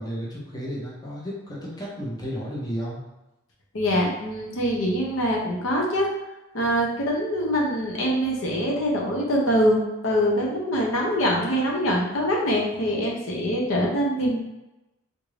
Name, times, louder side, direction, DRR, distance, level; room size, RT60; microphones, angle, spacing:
voice 1, 0.0-3.0, equal, 20° left, -5 dB, 0.7 m, -33 dB
voice 2, 3.7-6.1 6.5-14.4, equal, 65° left, -2 dB, 0.7 m, -24 dB
3.6 x 2.6 x 3.2 m, 0.98 s
head